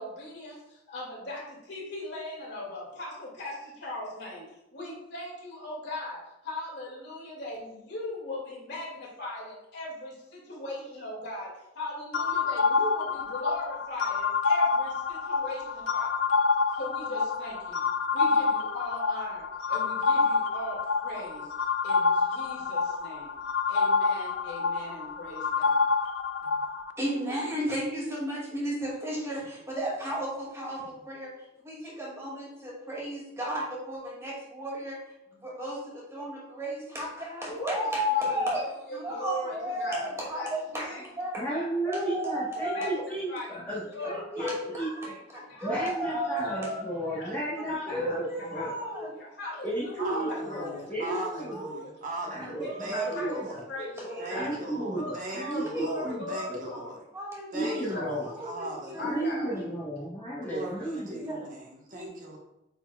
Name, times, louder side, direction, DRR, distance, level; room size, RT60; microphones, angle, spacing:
voice 1, 0.0-16.2 16.7-17.8 18.1-21.5 21.8-23.3 23.7-25.9 26.4-26.6 37.4-41.8 42.2-42.4 42.7-44.5 45.0-47.4 47.7-48.0 48.4-49.9 50.2-50.6 51.2-51.3 51.8-51.9 52.6-54.5 54.9-56.9 57.6-58.1 59.0-59.6, left 1 dB, 65° left, -3 dB, 2.3 m, -39 dB
sound 1, 12.1-26.9, left 4 dB, 80° left, 0.4 m, -27 dB
voice 2, 27.0-31.3 31.6-35.0 35.4-38.6 38.9-41.4 41.9-42.9 44.0-45.1 45.6-46.8 47.8-49.1 49.8-51.7 52.5-53.4 53.8-54.4 55.7-56.1 57.1-57.8 58.2-58.3 58.6-59.6 61.1-61.4 61.9-62.1, equal, 15° right, -5 dB, 2.3 m, -34 dB
voice 3, 41.4-45.1 45.6-48.7 49.6-51.6 52.2-53.6 54.3-56.7 57.5-58.2 59.1-61.2, right 1 dB, 10° left, -10 dB, 1.3 m, -34 dB
voice 4, 50.0-53.6 54.2-57.0 57.5-59.2 60.4-62.4, right 2 dB, 45° right, -2 dB, 1.3 m, -39 dB
8.8 x 4.4 x 2.4 m, 0.86 s
head